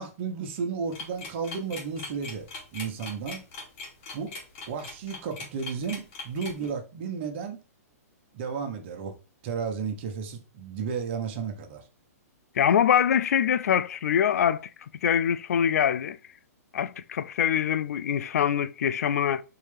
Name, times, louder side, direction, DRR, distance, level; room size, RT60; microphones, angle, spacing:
voice 1, 0.0-2.5 2.7-3.4 4.1-4.3 4.7-7.6 8.3-9.1 9.4-11.8, right 6 dB, 45° right, 1.1 m, -33 dB
sound 1, 0.9-6.7, left 3 dB, 45° left, 2.2 m, -40 dB
voice 2, 12.6-14.7 15.0-16.2 16.7-19.4, left 9 dB, 75° left, 0.4 m, -24 dB
4.6 x 3.2 x 3.4 m
hypercardioid pair, 140°, 9 cm